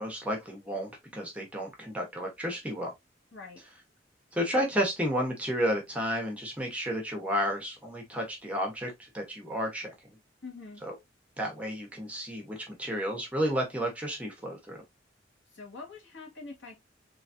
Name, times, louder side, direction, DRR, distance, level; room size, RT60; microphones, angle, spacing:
voice 1, 0.0-2.9 4.3-9.9 10.9-11.0 11.4-14.8, equal, 10° right, 1.3 m, -32 dB
voice 2, 10.4-10.8 15.5-16.8, left 3 dB, 80° left, 2.2 m, -44 dB
4.0 x 3.3 x 2.7 m
head